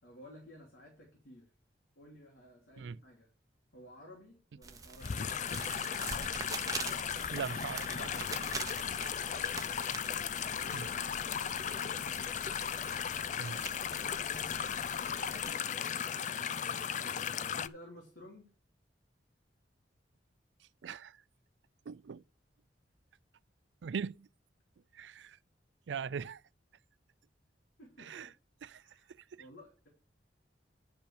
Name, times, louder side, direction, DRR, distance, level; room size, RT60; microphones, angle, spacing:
voice 1, 0.0-1.5 1.9-3.3 3.7-5.2 13.9-14.6 16.5-18.5 27.8-28.3 28.8-29.9, left 1 dB, 80° left, 3.2 m, -55 dB
sound 1, 4.6-15.5, right 4 dB, 20° right, 0.9 m, -45 dB
sound 2, 5.0-17.7, left 8 dB, 40° left, 0.4 m, -36 dB
voice 2, 7.3-8.3 10.7-10.9 13.4-13.6 20.8-21.2 21.9-22.2 23.8-24.3 24.9-25.4 25.9-26.4 28.0-28.3 28.6-28.8 29.3-29.4, right 6 dB, 70° right, 0.4 m, -40 dB
10.5 x 5.4 x 6.7 m
head